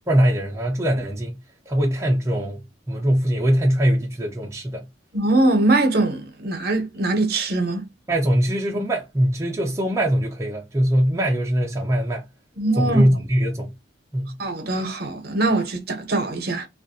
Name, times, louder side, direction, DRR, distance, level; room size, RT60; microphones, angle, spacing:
voice 1, 0.0-1.4 1.7-2.6 2.9-4.8 8.1-12.2 12.8-13.7 14.1-14.4, equal, 15° right, 0.4 m, -21 dB
voice 2, 5.1-7.9 12.6-13.2 14.4-16.7, right 2 dB, 50° right, 0.6 m, -22 dB
2.3 x 2.1 x 2.6 m
head